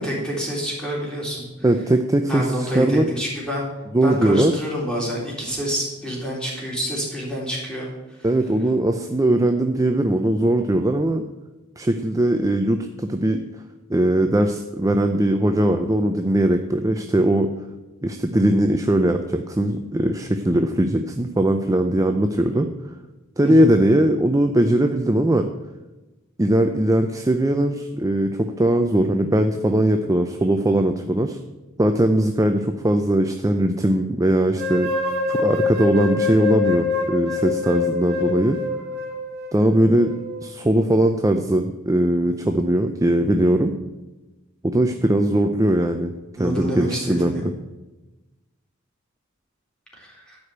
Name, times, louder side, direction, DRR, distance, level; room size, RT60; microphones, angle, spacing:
voice 1, 0.0-1.5 2.3-3.6 4.0-7.9 23.4-23.7 46.4-47.4 49.9-50.4, equal, 5° left, -4 dB, 3.5 m, -27 dB
voice 2, 1.6-3.1 3.9-4.5 8.2-11.2 11.8-13.4 13.9-17.5 18.0-22.7 23.4-25.5 26.4-31.4 31.8-34.9 35.3-38.6 39.5-43.7 44.6-46.1 46.4-47.5, right 1 dB, 15° right, 6 dB, 0.5 m, -20 dB
sound 1, 34.6-40.6, left 4 dB, 50° right, 3.6 m, -26 dB
12.5 x 5.0 x 8.6 m, 1.1 s
head